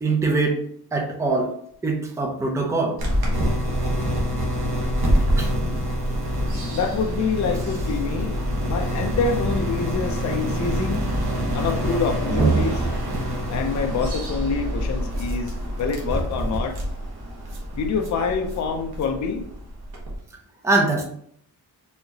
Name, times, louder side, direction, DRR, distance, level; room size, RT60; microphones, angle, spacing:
voice 1, 0.0-0.6 0.9-1.5 1.8-2.9 5.4-5.5 20.6-21.0, right 3 dB, 10° right, 0 dB, 0.5 m, -22 dB
sound 1, 3.0-20.2, right 1 dB, 70° right, 1.1 m, -25 dB
voice 2, 6.7-11.1 11.5-12.8 13.5-16.7 17.8-19.5, left 5 dB, 50° left, 4 dB, 0.5 m, -26 dB
4.3 x 2.7 x 2.8 m, 0.65 s
wide cardioid pair, 180°, 39 cm